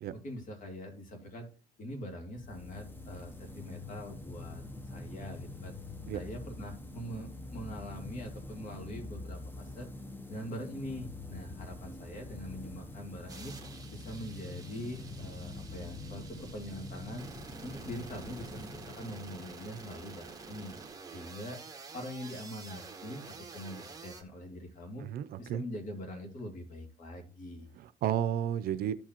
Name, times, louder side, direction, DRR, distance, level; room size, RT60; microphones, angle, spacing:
voice 1, 0.2-1.5 1.8-5.7 6.1-9.9 10.3-13.6 13.9-17.2 17.6-20.7 21.1-21.6 21.9-25.1 25.4-27.7, equal, 50° left, 2.5 m, -43 dB
sound 1, 2.4-19.9, left 2 dB, 10° left, 0.8 m, -45 dB
sound 2, 13.3-24.2, right 4 dB, 20° right, 1.3 m, -49 dB
voice 2, 25.0-25.6 27.7-28.9, right 10 dB, 65° right, 0.5 m, -32 dB
13.5 x 4.6 x 3.0 m
cardioid pair, 110°, 17 cm